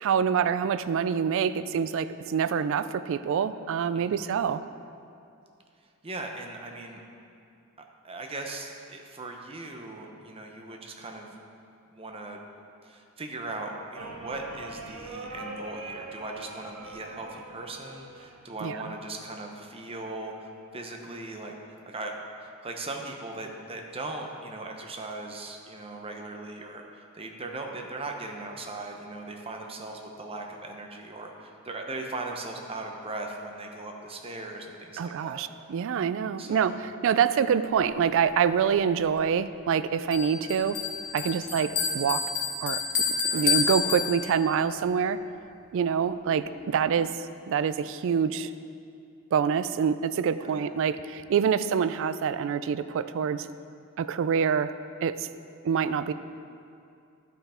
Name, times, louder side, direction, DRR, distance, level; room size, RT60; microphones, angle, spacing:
voice 1, 0.0-4.6 18.6-18.8 35.0-40.8 41.1-42.2 42.6-42.8 43.3-45.2 45.7-47.1 47.5-48.5 49.3-53.5 54.0-54.7 55.0-55.3 55.6-56.1, right 7 dB, 60° right, 14 dB, 0.3 m, -26 dB
voice 2, 3.9-4.3 6.0-7.0 8.0-11.3 11.9-12.4 12.8-22.1 22.4-35.4 36.4-36.8 41.2-41.5 43.3-43.5 50.4-50.6, right 2 dB, 25° right, 2 dB, 0.8 m, -39 dB
sound 1, 13.9-19.0 20.1-20.6, right 2 dB, 90° right, 1.0 m, -43 dB
Bell, 40.1-44.6, left 5 dB, 55° left, 1.2 m, -29 dB
12.0 x 5.6 x 4.3 m, 2.5 s
head